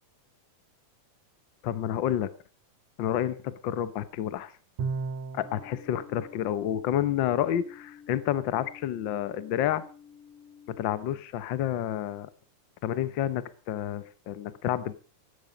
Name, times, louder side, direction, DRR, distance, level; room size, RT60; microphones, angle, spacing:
voice 1, 1.6-2.3 3.0-4.5 5.3-9.8 10.8-12.3 12.8-14.9, left 11 dB, 80° left, 15 dB, 1.0 m, -29 dB
Bowed string instrument, 4.8-5.7, right 4 dB, 65° right, 2.2 m, -32 dB
sound 1, 5.4-10.9, left 7 dB, 90° right, 5.2 m, -51 dB
16.0 x 12.0 x 5.2 m, 0.38 s
omnidirectional pair, 3.5 m